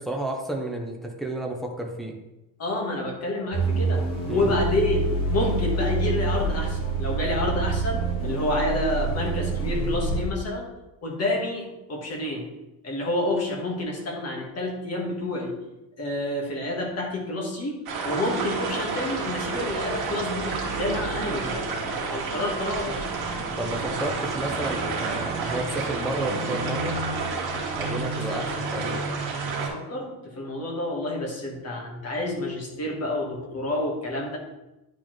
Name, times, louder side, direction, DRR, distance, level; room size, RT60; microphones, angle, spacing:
voice 1, 0.0-2.2 4.3-4.5 23.6-27.0 27.8-29.1, right 2 dB, ahead, 0 dB, 0.4 m, -31 dB
voice 2, 2.6-10.7 11.0-12.5 12.8-15.5 16.0-23.0 28.1-28.4 29.6-34.4, left 1 dB, 30° left, -1 dB, 1.4 m, -29 dB
sound 1, 3.5-10.2, right 3 dB, 70° left, 2.1 m, -26 dB
sound 2, 17.9-29.7, right 4 dB, 50° right, 1.8 m, -30 dB
9.8 x 4.2 x 3.1 m, 0.97 s
cardioid pair, 175°, 47 cm